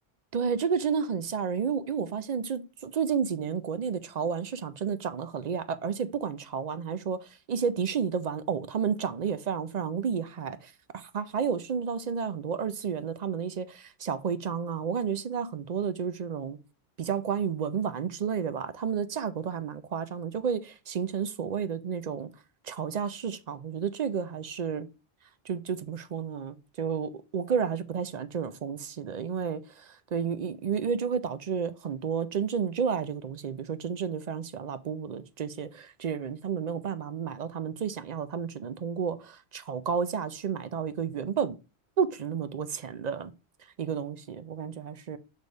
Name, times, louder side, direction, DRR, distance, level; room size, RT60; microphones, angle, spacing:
voice 1, 0.3-16.6 17.0-22.3 22.6-24.9 25.5-41.6 42.0-43.3 43.8-45.2, right 7 dB, 50° right, 0.5 m, -31 dB
6.3 x 3.4 x 5.2 m
omnidirectional pair, 1.1 m